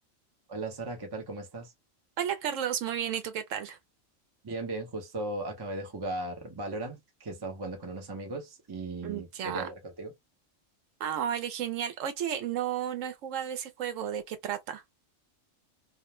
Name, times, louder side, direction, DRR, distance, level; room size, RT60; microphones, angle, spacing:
voice 1, 0.5-1.7 4.4-10.1, right 2 dB, 25° right, 0.5 m, -37 dB
voice 2, 2.2-3.8 9.0-9.7 11.0-14.8, right 9 dB, 75° right, 1.0 m, -33 dB
2.4 x 2.1 x 3.0 m
omnidirectional pair, 1.3 m